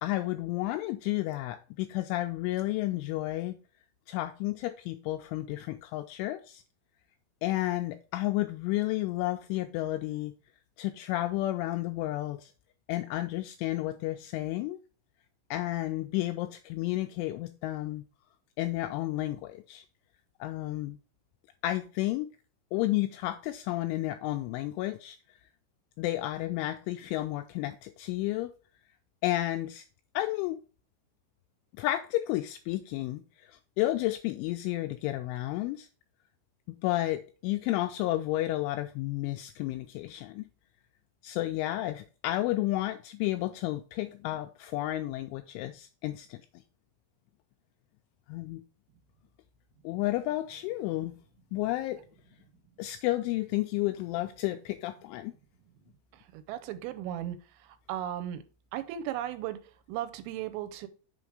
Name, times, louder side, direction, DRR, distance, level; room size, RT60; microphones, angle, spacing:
voice 1, 0.0-3.6 4.1-6.6 7.4-10.3 10.8-12.5 12.9-14.8 15.5-18.0 18.6-19.8 20.4-21.0 21.6-22.3 22.7-25.2 26.0-28.5 29.2-29.8 30.1-30.6 31.8-33.5 33.8-35.9 36.8-40.5 41.2-46.4 48.3-48.6 49.8-51.1 51.5-52.0 52.8-55.3, left 16 dB, 85° left, 2.7 m, -31 dB
voice 2, 56.3-57.4 57.9-58.4 58.7-59.6 59.9-60.9, right 11 dB, 80° right, 3.2 m, -35 dB
7.1 x 5.0 x 4.8 m
omnidirectional pair, 6.0 m